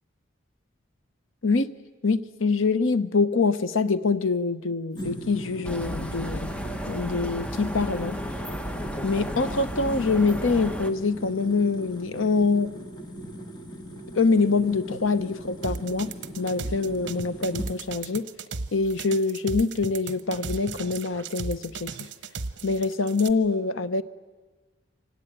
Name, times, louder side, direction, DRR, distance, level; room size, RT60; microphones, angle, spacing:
voice 1, 1.4-6.5 6.9-8.2 9.0-12.7 14.1-18.3 18.7-22.1 22.6-24.0, left 4 dB, 85° left, 13 dB, 0.9 m, -25 dB
sound 1, 4.9-17.7, equal, 20° left, 1.7 m, -39 dB
sound 2, 5.6-10.9, equal, 5° left, 0.9 m, -33 dB
sound 3, 15.6-23.3, right 4 dB, 60° right, 1.0 m, -35 dB
24.5 x 19.0 x 9.0 m, 1.3 s
head